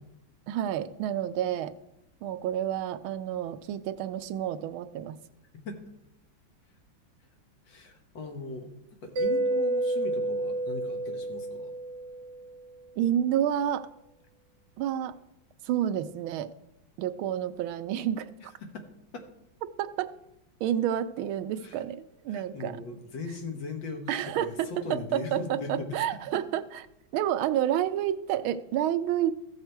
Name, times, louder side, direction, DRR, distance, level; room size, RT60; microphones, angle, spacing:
voice 1, 0.5-1.7 2.2-5.1 13.0-13.9 14.8-15.1 15.6-16.5 17.0-18.3 19.8-20.1 20.6-22.8 24.1-26.6 27.1-29.3, right 10 dB, 80° right, 12 dB, 1.4 m, -29 dB
voice 2, 7.7-8.7 9.0-11.7 18.6-18.9 19.1-19.2 21.6-21.8 22.3-26.0, left 3 dB, 65° left, 5 dB, 2.0 m, -39 dB
Mallet percussion, 9.2-12.6, right 2 dB, 60° right, 0.7 m, -30 dB
14.5 x 6.6 x 4.5 m, 0.88 s
omnidirectional pair, 2.3 m